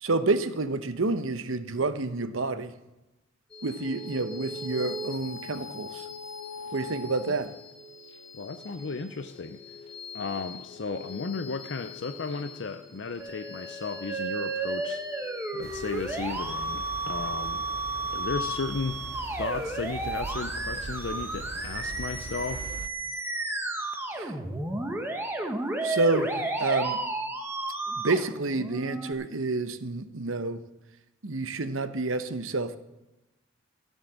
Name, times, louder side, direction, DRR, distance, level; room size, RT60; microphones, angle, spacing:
voice 1, 0.0-2.7 3.6-6.1 6.7-7.5 24.1-24.3 25.8-27.0 27.9-30.6 31.2-32.8, right 3 dB, 90° right, 0.9 m, -29 dB
sound 1, 3.5-18.3, left 3 dB, 25° left, 1.6 m, -43 dB
voice 2, 8.3-9.6 10.1-17.6 18.1-19.0 19.4-22.7, left 4 dB, 65° left, 0.6 m, -35 dB
Musical instrument, 13.2-29.1, right 2 dB, 10° right, 1.2 m, -33 dB
sound 2, 15.6-22.9, right 4 dB, 50° right, 0.4 m, -41 dB
14.0 x 7.4 x 7.5 m
head